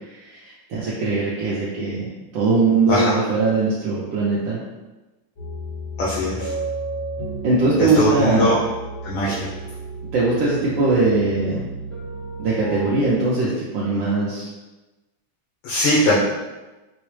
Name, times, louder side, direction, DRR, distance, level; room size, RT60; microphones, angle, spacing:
voice 1, 0.1-2.1 2.3-4.6 7.4-8.5 9.3-9.4 10.1-11.6 12.4-14.5, right 3 dB, 75° right, -7 dB, 1.3 m, -21 dB
sound 1, 5.4-13.0, right 2 dB, 35° left, 0.4 m, -32 dB
voice 2, 6.0-6.5 7.8-8.5 9.0-9.5 15.6-16.2, left 1 dB, 80° left, -8 dB, 1.6 m, -20 dB
4.7 x 2.1 x 3.1 m, 1.1 s
omnidirectional pair, 2.2 m